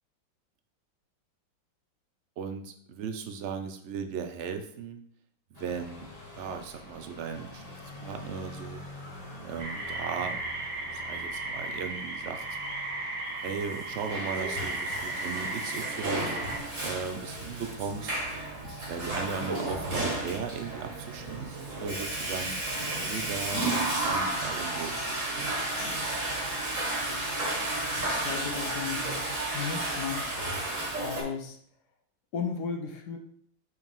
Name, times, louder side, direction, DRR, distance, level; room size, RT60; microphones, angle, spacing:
voice 1, 2.4-5.0 5.5-6.1 6.3-7.8 8.0-8.8 9.4-10.4 10.9-12.4 13.4-16.3 16.8-18.1 18.9-22.6 22.9-25.3, right 6 dB, 65° right, 7 dB, 0.7 m, -37 dB
sound 1, 5.5-25.0, left 1 dB, 20° left, 1.7 m, -49 dB
sound 2, 9.6-16.6, right 2 dB, 90° right, 2.1 m, -35 dB
Water / Toilet flush, 13.7-31.2, right 2 dB, 40° right, 2.2 m, -32 dB
voice 2, 28.0-30.4 30.9-31.6 32.3-33.2, left 6 dB, 60° left, 5 dB, 1.3 m, -36 dB
5.3 x 4.8 x 5.3 m, 0.64 s
omnidirectional pair, 2.1 m